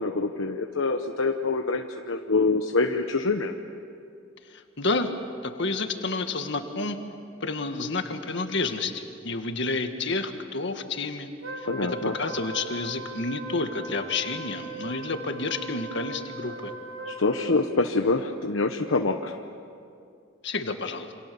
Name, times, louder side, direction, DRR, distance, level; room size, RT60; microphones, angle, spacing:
voice 1, 0.0-3.5 11.6-12.1 17.0-19.4, left 3 dB, 80° left, 4 dB, 1.0 m, -25 dB
voice 2, 4.5-5.1 5.4-7.0 7.4-11.3 11.6-16.7 20.4-21.1, left 3 dB, 65° left, 6 dB, 1.9 m, -30 dB
Wind instrument woodwind instrument, 11.4-17.7, right 2 dB, 80° right, 2.1 m, -39 dB
28.5 x 26.5 x 7.1 m, 2.5 s
head